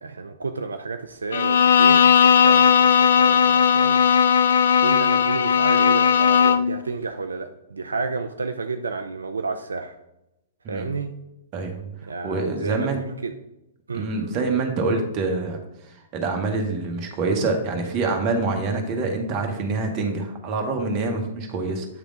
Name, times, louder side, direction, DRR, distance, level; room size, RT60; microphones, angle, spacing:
voice 1, 0.0-4.0 4.8-9.9 10.7-11.1 12.1-13.3 13.9-14.5, right 4 dB, 80° right, 7 dB, 0.4 m, -31 dB
Bowed string instrument, 1.3-6.8, left 7 dB, 65° left, 0.3 m, -17 dB
voice 2, 11.5-12.0 12.2-13.0 13.9-15.6 15.9-21.9, right 3 dB, 35° right, 3 dB, 1.2 m, -26 dB
8.5 x 3.4 x 3.8 m, 0.88 s
figure-of-eight pair, 115°, 0 cm